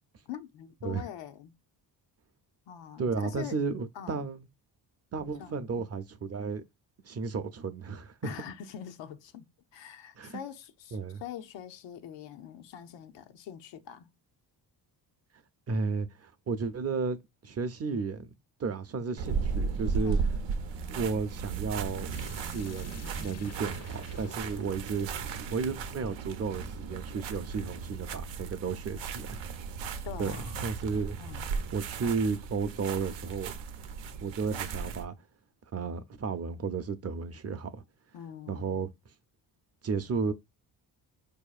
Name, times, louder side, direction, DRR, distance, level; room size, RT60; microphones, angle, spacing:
voice 1, 0.3-1.6 2.7-3.6 3.9-4.2 5.4-5.9 8.2-14.1 20.0-20.3 30.0-30.8 31.2-31.5 38.1-38.9, left 9 dB, 80° left, 0.6 m, -44 dB
voice 2, 3.0-4.5 5.1-6.6 7.0-8.3 10.2-10.4 10.9-11.2 15.7-18.3 18.6-20.2 20.9-22.1 22.5-25.1 25.5-29.4 30.2-31.2 31.7-33.5 34.2-35.1 35.7-37.8 38.5-38.9 39.8-40.3, right 5 dB, 35° right, 0.5 m, -33 dB
sound 1, 19.2-35.0, right 5 dB, 90° right, 0.7 m, -36 dB
sound 2, 22.1-26.8, left 6 dB, 35° left, 0.5 m, -52 dB
4.5 x 2.7 x 2.3 m
cardioid pair, 90°, 43 cm